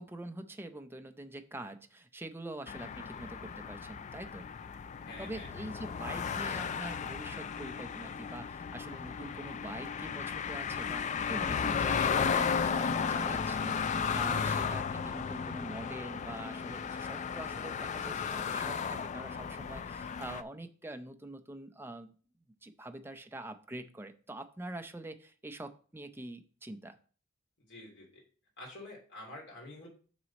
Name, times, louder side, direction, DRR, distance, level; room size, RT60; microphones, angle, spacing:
voice 1, 0.0-4.5 5.2-22.1 22.6-27.0, right 1 dB, 10° right, 7 dB, 0.5 m, -45 dB
sound 1, 2.7-20.4, left 6 dB, 35° left, 0.3 m, -34 dB
voice 2, 5.0-5.5 14.4-14.7 27.6-28.2 28.6-29.9, left 2 dB, 60° left, -3 dB, 2.8 m, -48 dB
6.2 x 6.0 x 4.1 m, 0.41 s
head